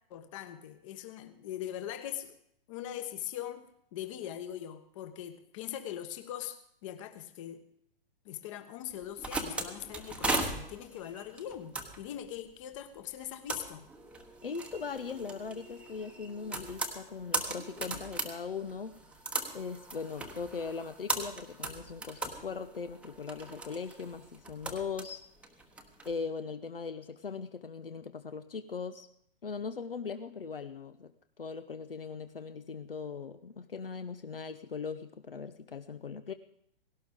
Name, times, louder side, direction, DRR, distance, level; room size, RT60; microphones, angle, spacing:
voice 1, 0.1-2.4 2.7-7.6 8.2-13.9, left 11 dB, 35° left, 10 dB, 1.3 m, -41 dB
sound 1, 8.9-26.1, right 2 dB, 5° right, 1.1 m, -39 dB
voice 2, 14.4-19.0 19.5-25.2 26.0-29.1 29.4-31.1 31.4-36.3, left 5 dB, 70° left, 10 dB, 1.0 m, -39 dB
18.0 x 17.0 x 3.6 m, 0.71 s
figure-of-eight pair, 120°, 30 cm